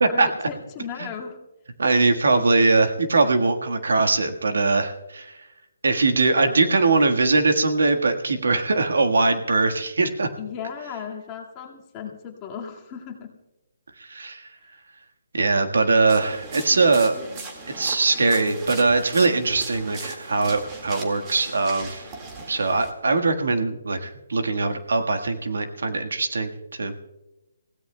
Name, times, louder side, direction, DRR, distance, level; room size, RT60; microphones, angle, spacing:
voice 1, 0.1-1.4 10.4-13.3, left 7 dB, 20° left, -1 dB, 1.9 m, -36 dB
voice 2, 1.8-5.4 5.8-10.3 14.0-14.5 15.3-17.2 17.7-22.1 22.5-26.5 26.8-27.0, right 3 dB, 80° right, 6 dB, 1.5 m, -21 dB
sound 1, 16.1-22.9, right 3 dB, 20° right, 1.9 m, -38 dB
29.5 x 17.0 x 2.2 m, 0.97 s
hypercardioid pair, 165°, 0 cm